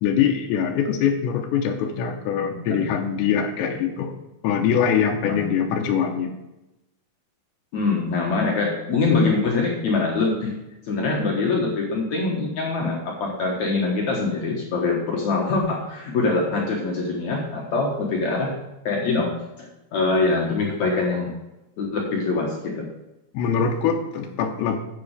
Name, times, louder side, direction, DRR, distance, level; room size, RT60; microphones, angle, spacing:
voice 1, 0.0-4.1 4.4-6.4 23.3-24.8, left 7 dB, 85° left, 2 dB, 3.0 m, -23 dB
voice 2, 2.4-2.8 5.2-5.4 7.7-10.5 10.9-18.5 18.9-21.4 21.8-22.9, left 3 dB, 65° left, -2 dB, 1.8 m, -24 dB
9.4 x 7.5 x 4.9 m, 0.95 s
omnidirectional pair, 5.2 m